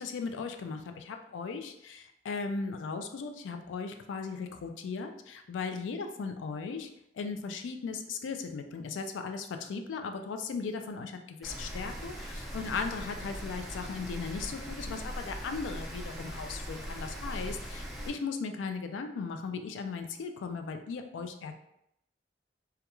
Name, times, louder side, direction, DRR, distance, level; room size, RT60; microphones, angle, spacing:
voice 1, 0.0-6.9 7.1-21.5, left 4 dB, 90° left, 7 dB, 0.3 m, -37 dB
Rain, 11.4-18.1, equal, ahead, 0.5 m, -40 dB
2.3 x 2.2 x 2.9 m, 0.79 s
head